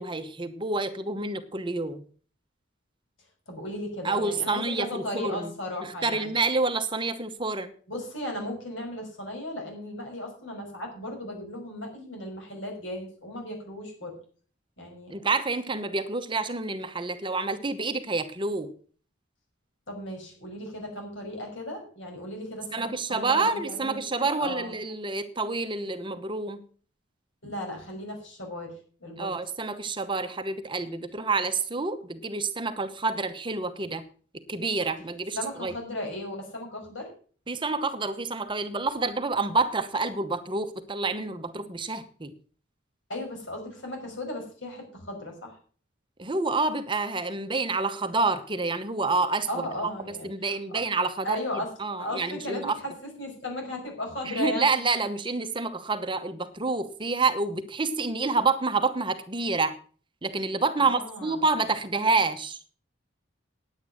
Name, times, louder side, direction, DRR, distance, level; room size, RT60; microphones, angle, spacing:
voice 1, 0.0-2.1 4.0-5.5 5.8-7.7 15.1-18.7 22.7-26.6 29.2-34.0 34.3-35.7 37.5-42.3 46.2-49.7 50.2-51.4 51.8-52.8 54.2-59.8 60.2-62.7, right 3 dB, 25° right, 9 dB, 0.9 m, -28 dB
voice 2, 3.5-6.3 7.9-14.2 14.8-15.1 19.9-24.7 27.4-29.3 35.4-37.1 43.1-45.6 49.5-50.3 50.7-50.8 51.2-52.9 53.2-54.7 60.8-61.5, left 1 dB, 75° left, 2 dB, 5.5 m, -36 dB
9.9 x 8.9 x 6.4 m, 0.43 s
head